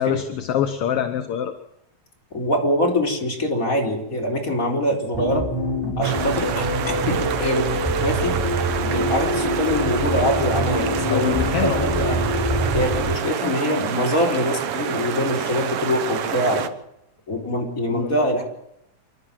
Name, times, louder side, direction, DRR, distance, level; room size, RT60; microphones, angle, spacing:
voice 1, 0.0-1.5 11.1-12.0 17.9-18.2, left 9 dB, 60° left, 7 dB, 1.7 m, -25 dB
voice 2, 2.3-5.4 6.0-7.6 8.0-8.4 8.9-11.3 11.6-12.2 12.7-16.6 17.3-18.4, left 1 dB, 25° left, 0 dB, 4.5 m, -24 dB
sound 1, 5.1-13.1, equal, 10° left, 4.0 m, -25 dB
sound 2, 6.0-16.7, right 8 dB, 60° right, 1.8 m, -28 dB
27.5 x 12.5 x 7.6 m, 0.80 s
omnidirectional pair, 3.4 m